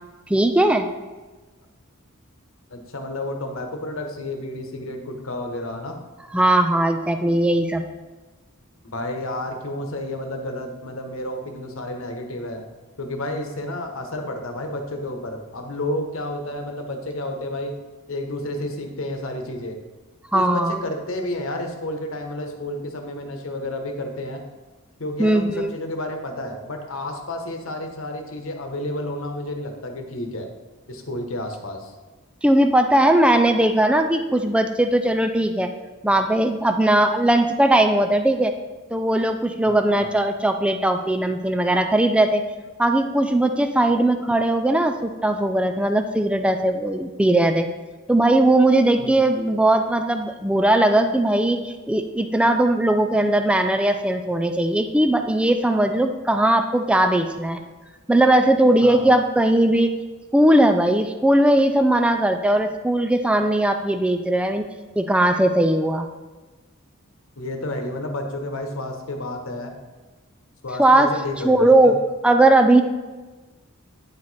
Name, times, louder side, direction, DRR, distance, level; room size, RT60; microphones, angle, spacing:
voice 1, 0.3-0.9 6.3-7.8 20.3-20.8 25.2-25.7 32.4-35.7 36.0-38.5 38.9-42.4 42.8-47.7 48.1-57.6 58.1-60.0 60.3-64.7 65.0-66.1 70.8-71.1 71.4-72.0 72.2-72.8, right 1 dB, 5° right, 6 dB, 0.3 m, -19 dB
voice 2, 2.7-6.0 8.8-12.6 13.0-17.7 18.1-19.8 20.3-24.4 25.0-30.5 30.9-31.9 39.7-40.1 49.0-49.2 58.8-59.1 67.4-69.7 70.6-72.0, left 1 dB, 65° left, 4 dB, 1.1 m, -31 dB
9.7 x 4.8 x 4.1 m, 1.3 s
head